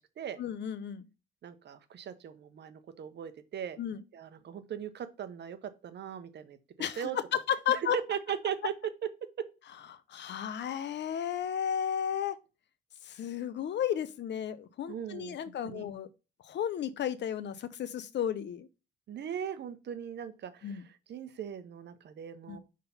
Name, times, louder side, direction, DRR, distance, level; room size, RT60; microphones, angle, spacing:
voice 1, 0.4-1.1 3.8-4.0 6.8-8.0 10.1-12.4 13.0-16.1 16.4-18.7 20.6-20.8 22.5-22.6, left 9 dB, 60° left, 0.8 m, -33 dB
voice 2, 1.4-3.8 4.1-7.2 7.7-8.7 9.4-9.5 14.9-15.4 15.6-15.9 19.1-22.6, right 8 dB, 60° right, 1.0 m, -39 dB
5.7 x 3.7 x 5.5 m
cardioid pair, 90°, 20 cm